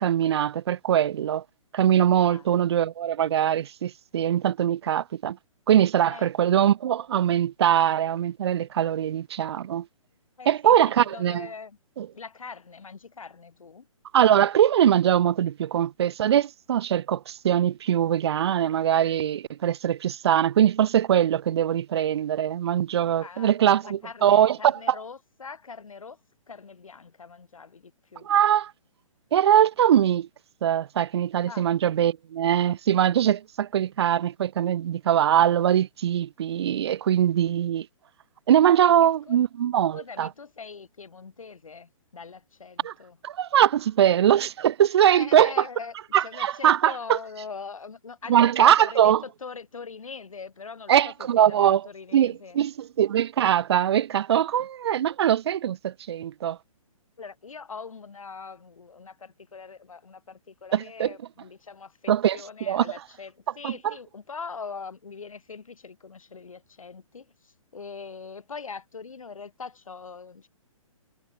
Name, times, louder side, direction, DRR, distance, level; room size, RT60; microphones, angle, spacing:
voice 1, 0.0-1.4 1.7-5.4 5.7-9.9 10.5-11.5 12.0-12.1 14.1-24.7 28.2-28.7 29.3-30.3 30.6-37.9 38.5-40.3 42.8-42.9 43.2-45.5 46.1-47.2 48.3-49.2 50.9-51.8 52.1-56.6 60.7-61.1 62.1-62.4 62.7-62.9 63.6-63.9, right 10 dB, 50° right, 0.7 m, -22 dB
voice 2, 10.4-11.8 12.1-13.9 23.2-26.2 26.5-28.3 31.4-31.7 38.8-39.4 39.9-43.2 45.1-45.9 46.2-52.6 57.2-70.5, left 5 dB, 70° left, 3.2 m, -42 dB
figure-of-eight pair, 130°, 18 cm